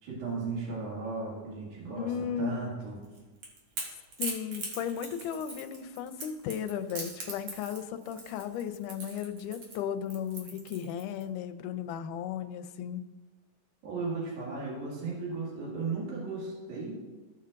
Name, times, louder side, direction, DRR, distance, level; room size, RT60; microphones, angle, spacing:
voice 1, 0.0-3.0 13.8-17.2, right 4 dB, 65° right, -5 dB, 3.5 m, -36 dB
voice 2, 2.0-2.7 4.2-13.1, left 8 dB, 80° left, 8 dB, 2.1 m, -35 dB
Crackle / Crack, 3.0-11.2, right 3 dB, 50° right, 1.9 m, -41 dB
15.5 x 5.6 x 2.5 m, 1.3 s
omnidirectional pair, 3.7 m